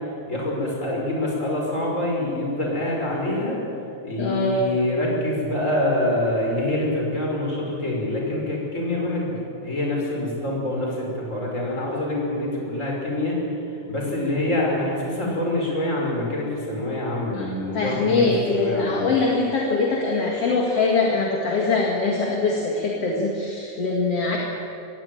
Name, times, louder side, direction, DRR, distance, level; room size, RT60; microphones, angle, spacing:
voice 1, 0.3-3.6 4.0-9.4 9.6-13.6 13.9-19.1, left 1 dB, 25° left, -2 dB, 5.6 m, -25 dB
voice 2, 4.2-4.8 17.3-17.5 17.7-24.4, left 3 dB, 55° left, -1 dB, 2.9 m, -23 dB
21.0 x 16.5 x 9.1 m, 2.8 s
omnidirectional pair, 3.3 m